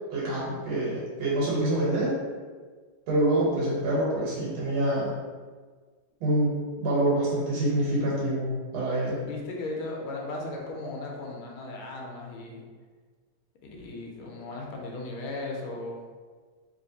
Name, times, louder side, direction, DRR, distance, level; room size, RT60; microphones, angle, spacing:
voice 1, 0.1-2.1 3.1-5.1 6.2-9.2, right 1 dB, 85° right, -6 dB, 1.8 m, -26 dB
voice 2, 9.2-12.6 13.6-16.0, left 2 dB, 85° left, 0 dB, 1.5 m, -36 dB
3.2 x 3.1 x 2.7 m, 1.5 s
omnidirectional pair, 2.2 m